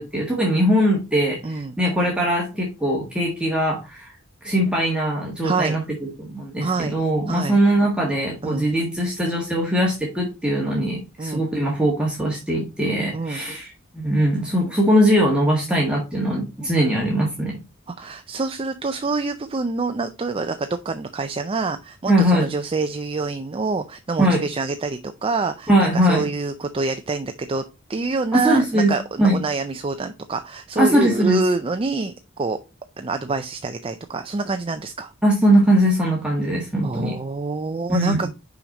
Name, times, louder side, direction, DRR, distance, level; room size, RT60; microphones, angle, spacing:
voice 1, 0.0-4.1 4.4-17.6 22.1-22.5 24.2-24.4 25.7-26.2 28.3-28.9 29.2-29.4 30.8-31.4 35.2-37.1 37.9-38.3, right 1 dB, 5° right, -3 dB, 1.5 m, -21 dB
voice 2, 1.4-1.8 5.4-5.8 6.6-7.0 7.3-7.6 8.4-8.7 11.2-11.4 13.1-13.4 17.9-27.6 27.9-32.6 33.0-35.1 36.8-38.3, right 3 dB, 25° right, 7 dB, 0.4 m, -26 dB
5.9 x 5.1 x 4.0 m, 0.29 s
head